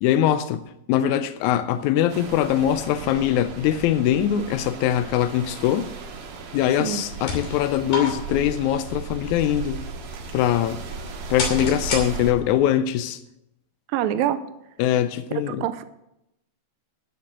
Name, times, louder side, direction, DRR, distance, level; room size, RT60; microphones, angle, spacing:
voice 1, 0.0-5.9 6.5-9.8 10.3-10.8 11.3-13.2 14.8-15.7, left 11 dB, 85° left, 1.7 m, -22 dB
sound 1, 2.1-12.3, right 4 dB, 70° right, 2.9 m, -36 dB
sound 2, 7.0-12.6, left 3 dB, 65° left, 4.3 m, -34 dB
voice 2, 13.9-14.4 15.5-15.8, right 11 dB, 90° right, 2.4 m, -25 dB
11.5 x 6.8 x 7.8 m
omnidirectional pair, 4.0 m